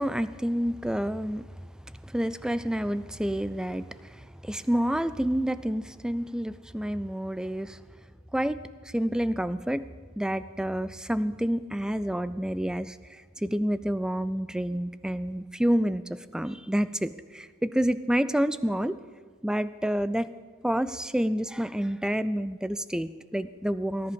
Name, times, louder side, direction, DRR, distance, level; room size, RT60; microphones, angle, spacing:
voice 1, 0.0-1.4 1.9-7.8 8.3-9.8 10.2-19.0 19.4-20.3 20.6-24.1, equal, 5° right, 14 dB, 0.4 m, -29 dB
19.0 x 11.0 x 5.2 m, 1.5 s
head